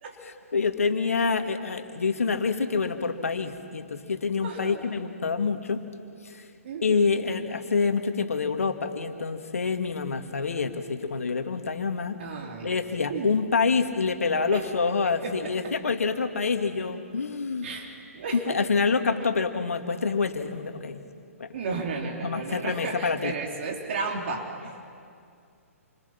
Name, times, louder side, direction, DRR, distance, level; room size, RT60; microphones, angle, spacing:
voice 1, 0.2-5.9 6.3-6.4 6.8-12.2 12.6-17.7 18.3-21.0 21.4-21.5 22.2-23.3, left 4 dB, 70° left, 7 dB, 2.0 m, -27 dB
voice 2, 4.4-4.8 6.6-7.1 12.2-12.7 13.1-13.3 14.5-14.7 15.0-15.7 17.6-18.6 21.5-24.8, right 4 dB, 50° right, 1 dB, 3.3 m, -34 dB
28.5 x 26.0 x 5.9 m, 2.3 s
figure-of-eight pair, 125°, 8 cm